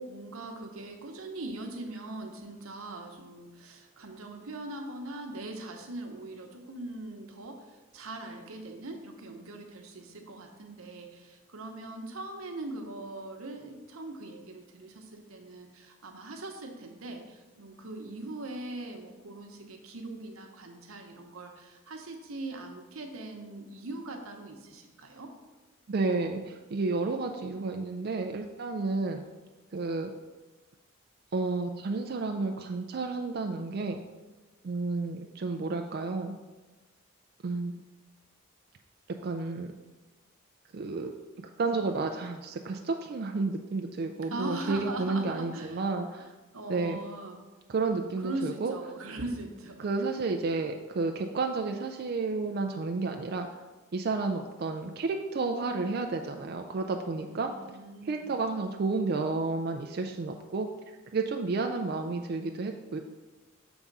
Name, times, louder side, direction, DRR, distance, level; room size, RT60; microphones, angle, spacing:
voice 1, 0.0-25.3 44.3-45.8 46.5-47.4 48.2-49.9 57.2-58.3, right 2 dB, 90° right, 3 dB, 0.9 m, -41 dB
voice 2, 25.9-29.2 29.7-30.1 31.3-34.0 34.6-36.3 37.4-37.7 39.2-39.7 40.7-41.1 41.4-46.3 46.7-47.0 47.7-48.7 49.8-53.5 53.9-57.5 58.0-60.7 61.1-63.0, right 3 dB, 50° right, 4 dB, 0.4 m, -31 dB
7.0 x 3.6 x 5.3 m, 1.2 s
head